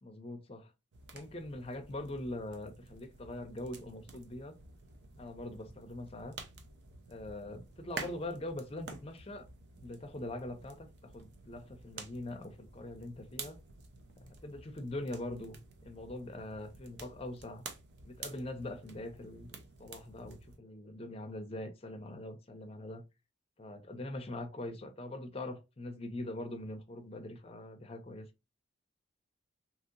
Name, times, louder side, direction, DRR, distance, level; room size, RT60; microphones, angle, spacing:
voice 1, 0.0-0.7 1.1-4.6 5.2-6.4 7.1-9.5 9.8-13.6 14.2-17.6 18.0-23.0 23.6-28.3, left 1 dB, 30° left, 0.5 m, -42 dB
sound 1, 0.9-20.6, right 4 dB, 55° right, 0.5 m, -50 dB
2.8 x 2.7 x 2.5 m
head